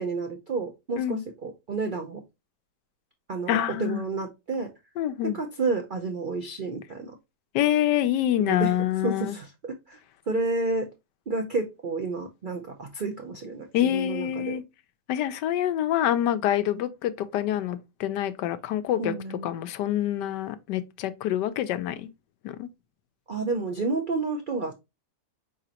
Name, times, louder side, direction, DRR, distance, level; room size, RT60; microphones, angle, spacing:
voice 1, 0.0-2.2 3.3-4.7 5.3-7.2 8.4-8.8 9.0-10.0 10.3-10.9 11.3-14.6 19.0-19.5 23.3-24.7, right 3 dB, 65° right, 0.5 m, -30 dB
voice 2, 3.5-4.1 5.0-5.4 7.5-9.4 13.7-14.6 15.1-19.1 19.4-22.1 22.4-22.7, left 11 dB, 85° left, 1.2 m, -26 dB
5.0 x 3.6 x 2.7 m
omnidirectional pair, 1.8 m